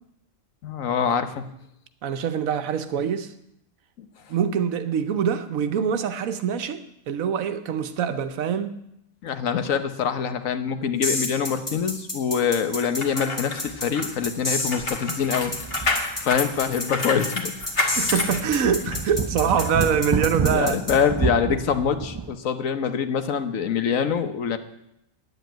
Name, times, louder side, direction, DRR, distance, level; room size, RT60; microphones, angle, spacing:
voice 1, 0.6-1.4 4.0-4.1 9.2-15.5 16.2-17.5 20.5-24.6, left 7 dB, 75° left, 1.3 m, -25 dB
voice 2, 2.0-3.3 4.3-8.8 17.8-20.8, right 7 dB, 90° right, 1.3 m, -24 dB
sound 1, 11.0-20.9, left 2 dB, 20° left, 2.0 m, -29 dB
sound 2, 12.8-19.1 19.6-19.7, left 2 dB, 45° left, 1.5 m, -29 dB
sound 3, 13.7-13.8 14.2-14.3 15.2-16.6 17.0-17.1 17.6-22.4, right 4 dB, 35° right, 0.4 m, -30 dB
9.3 x 8.2 x 9.1 m
omnidirectional pair, 1.4 m